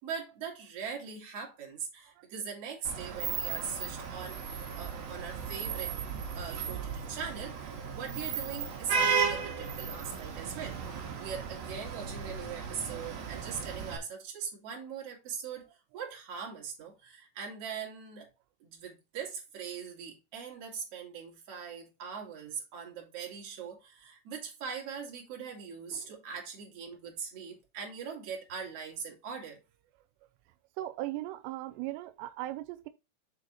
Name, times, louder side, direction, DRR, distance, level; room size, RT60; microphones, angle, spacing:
voice 1, 0.0-4.4 4.8-5.9 6.3-18.3 18.6-29.6, right 6 dB, 45° right, 2.7 m, -41 dB
Vehicle horn car horn honking / Traffic noise roadway noise, 2.9-14.0, right 6 dB, 65° right, 2.9 m, -35 dB
voice 2, 30.8-32.9, right 15 dB, 90° right, 2.8 m, -38 dB
7.2 x 4.2 x 4.2 m
omnidirectional pair, 4.8 m